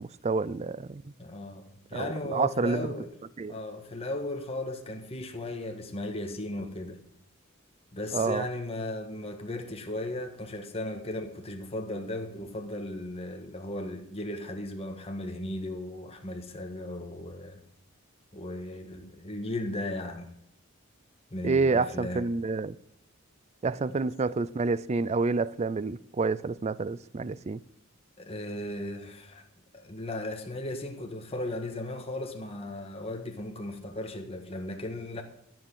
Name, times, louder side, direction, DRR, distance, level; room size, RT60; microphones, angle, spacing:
voice 1, 0.0-1.1 1.9-2.9 3.4-3.5 8.1-8.5 21.4-22.8 23.6-27.6, right 4 dB, 30° right, 0.4 m, -28 dB
voice 2, 1.2-3.1 3.5-7.0 7.9-17.6 18.3-20.3 21.3-22.3 28.2-29.4 29.7-35.2, left 1 dB, 30° left, 1.5 m, -36 dB
13.0 x 7.8 x 6.4 m
head